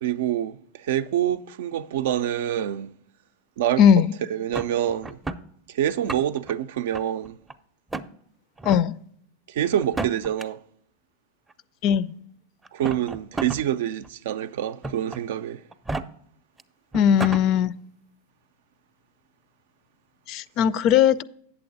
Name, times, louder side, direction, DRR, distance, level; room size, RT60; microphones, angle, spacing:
voice 1, 0.0-2.9 3.6-4.0 4.3-5.2 5.7-7.4 9.5-10.6 12.7-15.6, right 11 dB, 70° right, 0.4 m, -26 dB
voice 2, 3.8-4.1 8.7-8.9 11.8-12.1 16.9-17.7 20.3-21.2, left 9 dB, 45° left, 0.4 m, -18 dB
sound 1, 4.5-5.4 5.9-6.5 6.9-7.5 7.9-8.1 8.6-8.8 9.8-10.4 11.5-11.6 12.6-13.6 14.0-14.1 14.8-15.2 15.7-16.0 16.6-16.7 16.9-17.4, right 3 dB, 10° right, 0.5 m, -32 dB
8.5 x 7.0 x 4.0 m
hypercardioid pair, 110°, 0 cm